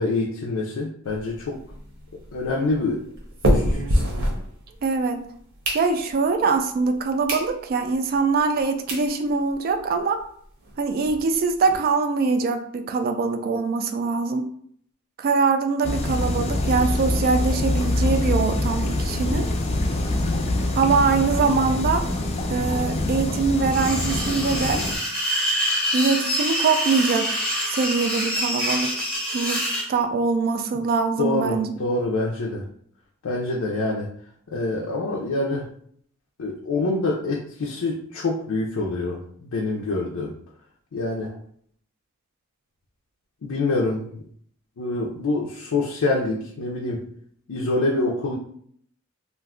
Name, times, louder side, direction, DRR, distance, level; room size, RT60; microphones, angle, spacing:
voice 1, 0.0-1.5 2.3-3.0 3.4-3.8 31.2-32.6 33.2-34.1 34.5-35.7 36.4-40.3 40.9-41.3 43.4-44.2 44.8-47.0 47.5-48.3, left 2 dB, 85° left, -2 dB, 0.5 m, -26 dB
sound 1, 1.1-5.0 5.4-6.3 6.8-6.9 7.2-7.5 7.9-8.0 8.6-8.7 8.9-9.1 9.5-9.6 9.8-9.9 10.2-10.3 10.6-11.8, equal, 65° right, 0.8 m, -26 dB
voice 2, 4.8-5.3 5.7-10.2 10.8-14.5 15.2-19.5 20.7-22.1 22.5-24.8 25.9-27.3 27.7-28.9 29.3-31.7, right 4 dB, 45° right, 7 dB, 0.3 m, -23 dB
sound 2, 15.8-24.9, left 2 dB, 30° left, 0.4 m, -25 dB
sound 3, 23.7-29.9, equal, 5° left, 0.8 m, -26 dB
2.4 x 2.2 x 3.5 m, 0.63 s
head